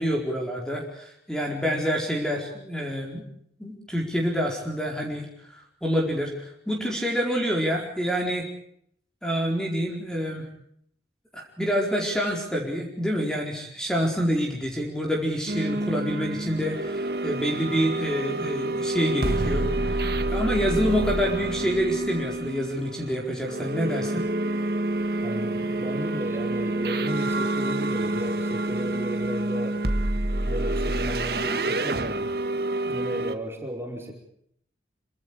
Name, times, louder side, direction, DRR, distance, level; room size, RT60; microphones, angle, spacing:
voice 1, 0.0-3.2 3.6-5.3 5.5-8.4 9.2-10.5 11.3-24.2, equal, 5° left, -1 dB, 4.5 m, -27 dB
sound 1, 15.5-33.4, right 2 dB, 60° right, 1.7 m, -28 dB
voice 2, 25.2-29.8 30.4-32.3 32.9-34.1, right 1 dB, 15° right, 1 dB, 4.8 m, -34 dB
27.5 x 25.0 x 5.0 m, 0.69 s
head